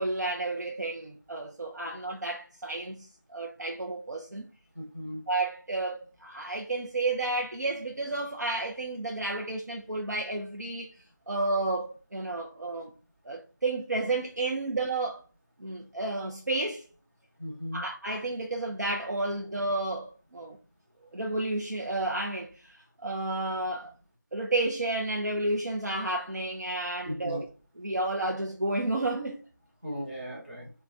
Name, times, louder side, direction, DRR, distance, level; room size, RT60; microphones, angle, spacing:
voice 1, 0.0-4.5 5.3-10.9 11.3-12.9 13.2-15.2 15.6-16.8 17.7-20.6 21.1-23.9 24.3-27.5 27.8-29.4, right 2 dB, 60° right, 0.6 m, -31 dB
voice 2, 4.7-5.3 17.4-17.8 27.0-27.5 29.8-30.7, equal, 35° right, 1.0 m, -37 dB
3.1 x 2.2 x 2.4 m
figure-of-eight pair, 170°, 10 cm